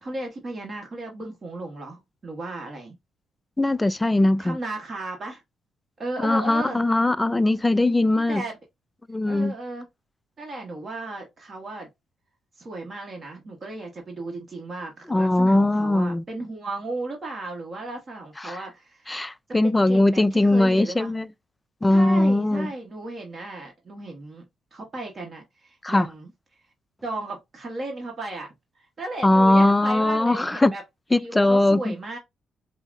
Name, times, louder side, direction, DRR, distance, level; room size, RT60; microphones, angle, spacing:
voice 1, 0.0-3.0 4.4-5.4 6.0-6.8 8.2-8.6 9.3-9.8 10.4-11.9 12.6-19.2 19.6-21.1 21.9-24.5 24.7-26.3 27.0-28.5 28.8-30.8 31.1-32.2, right 2 dB, 40° right, 1.0 m, -35 dB
voice 2, 3.6-4.6 6.2-8.4 9.1-9.5 15.1-16.2 18.4-18.6 19.1-21.3 21.8-22.7 25.8-26.1 29.2-30.7 31.1-31.9, left 2 dB, 15° left, 0.3 m, -20 dB
5.5 x 2.0 x 2.5 m
cardioid pair, 90°, 0 cm